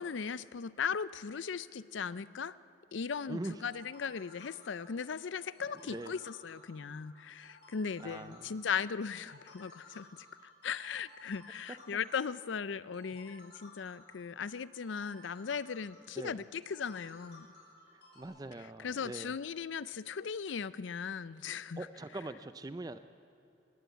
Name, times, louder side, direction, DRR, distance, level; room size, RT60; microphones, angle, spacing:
voice 1, 0.0-2.5 2.9-17.5 18.8-21.9, left 6 dB, 80° left, 17 dB, 0.5 m, -38 dB
voice 2, 3.3-3.6 5.8-6.1 8.0-8.5 16.2-16.4 18.2-19.3 21.8-23.0, right 2 dB, 20° right, 11 dB, 0.4 m, -42 dB
sound 1, 3.6-18.2, left 2 dB, 65° left, 7.0 m, -57 dB
20.5 x 16.5 x 8.2 m, 2.8 s
head